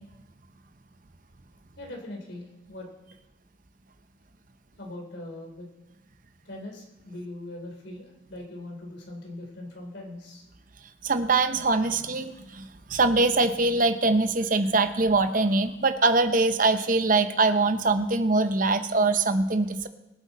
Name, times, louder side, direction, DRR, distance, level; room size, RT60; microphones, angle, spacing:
voice 1, 1.8-2.9 4.8-5.7 6.5-10.5, left 1 dB, 65° left, 1 dB, 3.5 m, -41 dB
voice 2, 11.0-19.9, right 3 dB, 45° right, 9 dB, 0.8 m, -23 dB
22.5 x 7.9 x 4.2 m, 0.98 s
head